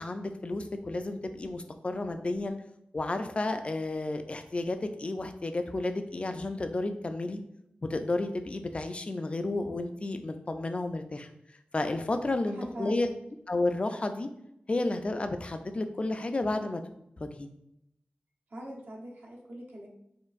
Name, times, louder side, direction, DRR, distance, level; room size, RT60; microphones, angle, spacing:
voice 1, 0.0-2.6 2.9-7.4 7.8-11.3 11.7-13.1 13.5-14.3 14.7-16.8 17.2-17.5, left 2 dB, 35° left, 7 dB, 0.3 m, -32 dB
voice 2, 12.5-13.2 18.5-19.9, equal, 75° right, -3 dB, 0.8 m, -41 dB
4.4 x 2.5 x 2.4 m, 0.79 s
wide cardioid pair, 95°, 3 cm